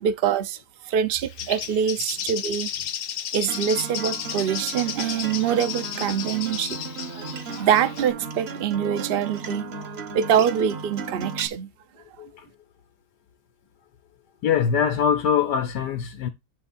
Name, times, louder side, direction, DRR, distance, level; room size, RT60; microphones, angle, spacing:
voice 1, 0.0-0.6 0.9-2.7 3.3-6.8 7.1-7.2 7.6-11.7, right 8 dB, 75° right, 0.5 m, -24 dB
Bird, 1.2-8.1, left 9 dB, 60° left, 0.9 m, -33 dB
Acoustic guitar, 3.5-11.5, right 4 dB, 50° right, 0.9 m, -36 dB
voice 2, 12.2-12.5 14.4-16.3, left 7 dB, 85° left, 1.5 m, -23 dB
9.0 x 3.5 x 4.1 m
omnidirectional pair, 1.8 m